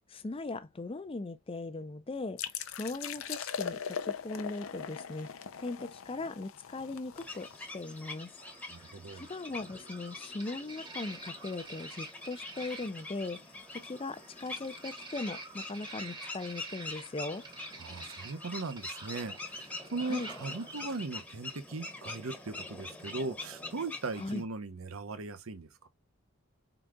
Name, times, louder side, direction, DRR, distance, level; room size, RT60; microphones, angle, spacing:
voice 1, 0.1-5.3 5.6-8.3 8.8-13.4 13.7-17.4 20.1-20.3 24.2-24.4, left 2 dB, 25° left, 0.5 m, -39 dB
sound 1, 2.4-7.9, left 7 dB, 75° left, 0.5 m, -40 dB
sound 2, 7.1-24.4, left 2 dB, 10° left, 1.1 m, -45 dB
sound 3, 7.6-21.0, right 3 dB, 20° right, 0.8 m, -50 dB
voice 2, 8.4-9.3 17.8-25.9, right 3 dB, 75° right, 0.8 m, -39 dB
4.8 x 3.9 x 2.3 m
head